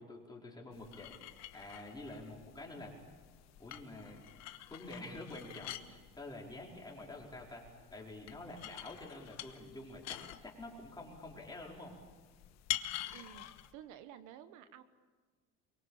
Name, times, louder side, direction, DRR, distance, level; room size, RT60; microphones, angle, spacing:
voice 1, 0.0-3.0 3.6-4.3 4.7-11.9, left 2 dB, 15° left, -2 dB, 4.8 m, -48 dB
sound 1, 0.7-13.7, left 13 dB, 60° left, 1.3 m, -47 dB
voice 2, 13.1-14.8, right 10 dB, 80° right, 11 dB, 1.3 m, -52 dB
23.5 x 23.5 x 7.3 m, 1.4 s
cardioid pair, 145°, 30 cm